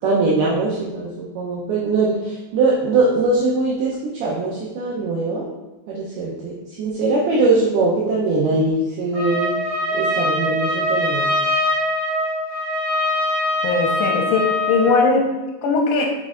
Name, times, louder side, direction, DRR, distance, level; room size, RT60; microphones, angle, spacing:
voice 1, 0.0-5.5 5.9-9.6 9.9-11.3, right 3 dB, 85° right, -4 dB, 2.2 m, -21 dB
Trumpet, 9.1-15.0, left 1 dB, 55° right, 1.9 m, -22 dB
voice 2, 13.6-15.3 15.6-16.1, left 4 dB, 85° left, 1 dB, 3.3 m, -19 dB
6.4 x 6.1 x 2.4 m, 1.1 s
omnidirectional pair, 5.5 m